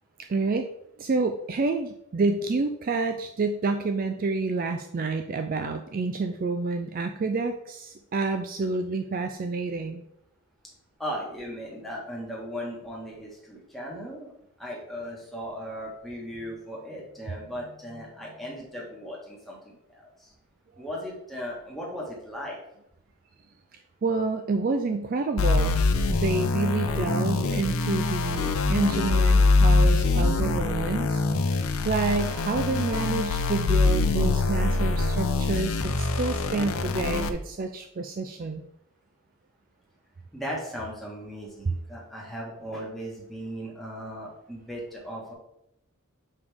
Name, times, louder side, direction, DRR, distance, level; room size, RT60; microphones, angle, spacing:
voice 1, 0.3-0.7 1.0-10.0 24.0-25.8 26.1-31.2 31.8-38.7, right 3 dB, 40° right, 6 dB, 0.3 m, -28 dB
voice 2, 11.0-14.3 14.6-20.3 20.8-22.6 40.3-45.3, equal, ahead, -4 dB, 1.6 m, -37 dB
sound 1, 25.4-37.3, left 3 dB, 75° left, 0.6 m, -24 dB
6.5 x 5.0 x 3.5 m, 0.78 s
head